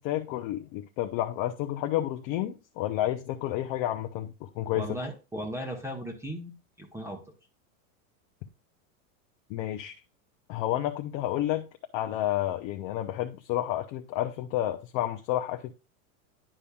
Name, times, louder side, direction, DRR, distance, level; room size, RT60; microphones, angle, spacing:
voice 1, 0.0-5.0 9.5-9.9 10.5-11.7 11.9-15.7, left 13 dB, 40° left, 0.6 m, -30 dB
voice 2, 4.7-7.2, equal, 5° right, 0.9 m, -37 dB
10.0 x 5.3 x 2.3 m
supercardioid pair, 135°, 42 cm